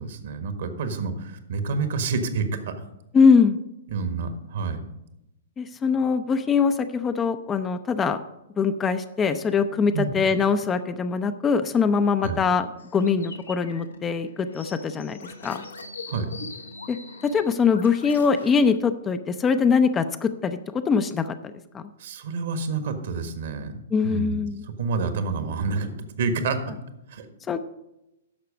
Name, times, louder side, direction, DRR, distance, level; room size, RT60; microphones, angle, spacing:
voice 1, 0.0-2.7 3.9-4.8 9.9-10.1 12.2-12.4 16.1-16.3 22.0-23.7 24.0-24.4 24.7-26.6 27.1-27.3, right 4 dB, 60° right, 8 dB, 1.4 m, -28 dB
voice 2, 3.1-3.6 5.6-8.2 8.6-12.7 12.9-15.6 16.9-17.0 17.2-21.9 23.9-24.6 27.5-27.6, left 5 dB, 20° left, 9 dB, 0.5 m, -22 dB
sound 1, 12.8-18.7, left 3 dB, 80° left, 1.2 m, -42 dB
10.5 x 6.7 x 5.2 m, 0.90 s
figure-of-eight pair, 115°, 0 cm